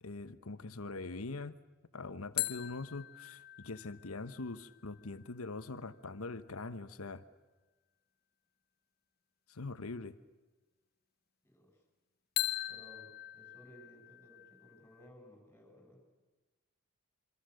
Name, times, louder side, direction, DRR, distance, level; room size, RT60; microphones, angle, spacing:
voice 1, 0.0-1.6 1.9-7.2 9.5-10.1, left 3 dB, 85° left, 12 dB, 1.1 m, -43 dB
sound 1, 2.4-5.9 12.4-15.1, left 15 dB, 45° left, 0.9 m, -41 dB
voice 2, 11.4-11.8 12.7-16.0, equal, 10° left, 2 dB, 6.9 m, -58 dB
27.0 x 25.0 x 6.5 m, 1.2 s
head